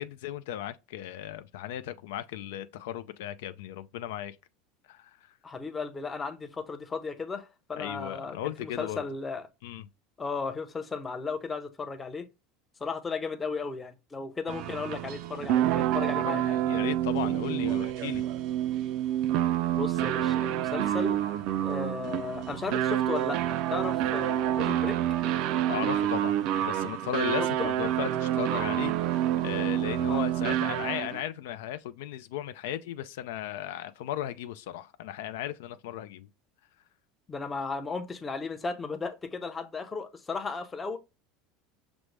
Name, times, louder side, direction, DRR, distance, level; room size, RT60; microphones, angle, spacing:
voice 1, 0.0-4.4 4.9-5.1 7.8-9.0 9.6-9.9 16.1-18.2 25.7-26.4 26.7-36.3, left 11 dB, 80° left, 0.3 m, -36 dB
voice 2, 5.4-9.5 10.2-12.3 12.8-16.6 19.8-21.2 21.6-25.0 27.6-27.7 30.1-30.3 37.3-41.0, left 4 dB, 15° left, 0.6 m, -35 dB
sound 1, 14.5-31.2, right 12 dB, 55° right, 0.4 m, -28 dB
6.0 x 2.1 x 3.2 m
supercardioid pair, 130°, 0 cm